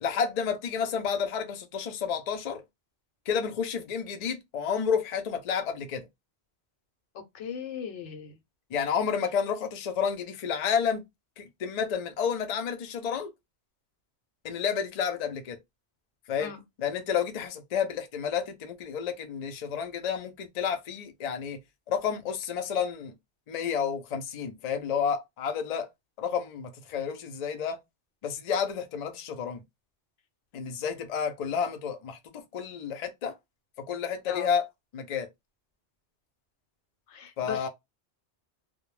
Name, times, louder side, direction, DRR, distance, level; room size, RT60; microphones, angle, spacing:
voice 1, 0.0-2.6 3.3-6.1 8.7-11.0 11.4-13.3 14.4-15.6 16.3-16.5 16.8-21.6 21.9-23.1 23.5-25.9 26.2-27.8 28.2-29.6 30.5-33.3 33.9-34.7 34.9-35.3 37.4-37.7, left 7 dB, 55° left, 0.5 m, -30 dB
voice 2, 7.3-8.3 16.4-16.6 34.3-34.5 37.1-37.7, left 8 dB, 85° left, 0.9 m, -37 dB
2.2 x 2.0 x 3.0 m
omnidirectional pair, 1.2 m